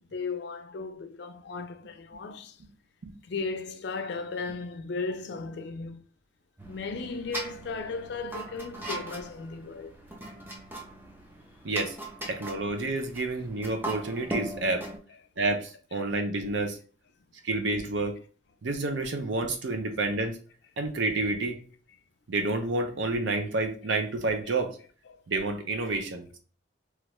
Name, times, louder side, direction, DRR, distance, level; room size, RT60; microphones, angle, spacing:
voice 1, 0.1-2.6 3.2-6.0 6.7-9.9 10.4-10.5 15.9-16.0, left 4 dB, 60° left, 0.4 m, -36 dB
sound 1, 6.6-15.0, right 1 dB, 10° right, 0.4 m, -40 dB
voice 2, 11.6-12.0 12.3-14.9 15.4-16.8 17.4-18.1 18.6-20.4 20.8-21.6 22.3-24.7 25.3-26.3, right 2 dB, 70° right, 0.6 m, -29 dB
3.1 x 2.4 x 3.0 m
head